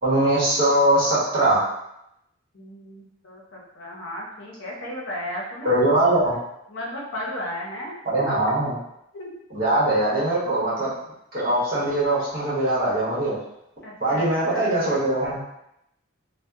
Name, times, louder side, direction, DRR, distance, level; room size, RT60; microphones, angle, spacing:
voice 1, 0.0-1.6 5.6-6.4 8.0-8.8 9.5-10.9 11.3-13.4 14.0-15.4, right 1 dB, 45° right, -9 dB, 1.0 m, -21 dB
voice 2, 2.5-5.7 6.7-8.0 9.1-9.3 13.8-14.7, left 1 dB, 60° left, -4 dB, 0.7 m, -34 dB
2.7 x 2.1 x 2.3 m, 0.81 s
head